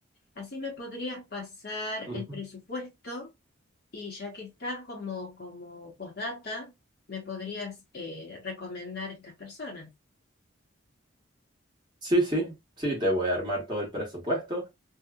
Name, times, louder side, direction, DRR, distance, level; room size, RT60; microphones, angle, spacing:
voice 1, 0.4-3.3 3.9-6.7 7.1-9.9, left 3 dB, 50° left, 1.1 m, -38 dB
voice 2, 2.0-2.4 12.0-14.7, right 1 dB, 20° right, 1.3 m, -28 dB
2.8 x 2.4 x 2.3 m
head